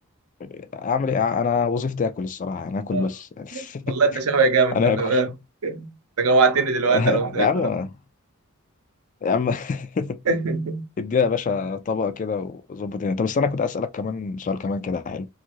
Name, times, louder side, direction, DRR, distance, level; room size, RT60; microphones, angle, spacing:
voice 1, 0.4-4.0 4.7-5.2 6.9-7.9 9.2-10.2 11.0-15.3, left 5 dB, 35° left, 0.3 m, -25 dB
voice 2, 3.5-5.3 5.6-7.7 10.3-10.9, right 4 dB, 80° right, 0.6 m, -22 dB
2.6 x 2.4 x 3.0 m
head